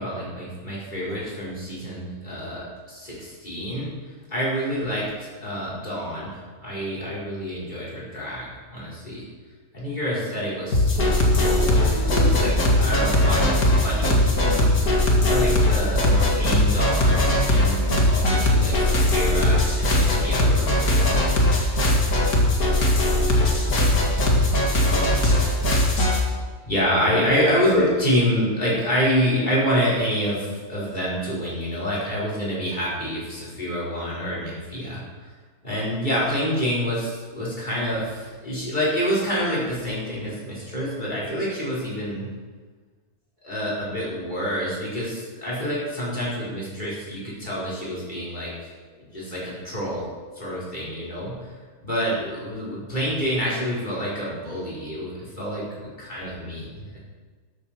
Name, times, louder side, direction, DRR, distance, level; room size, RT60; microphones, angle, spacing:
voice 1, 0.0-3.9 4.3-9.3 9.7-13.6 13.8-14.7 15.2-21.1 26.0-35.0 35.6-42.3 43.4-48.5 49.0-50.0 50.3-51.5 51.8-57.0, equal, 30° left, -7 dB, 5.3 m, -27 dB
sound 1, 10.7-26.2, left 1 dB, 70° left, 2.7 m, -20 dB
13.5 x 12.5 x 4.6 m, 1.4 s
omnidirectional pair, 1.6 m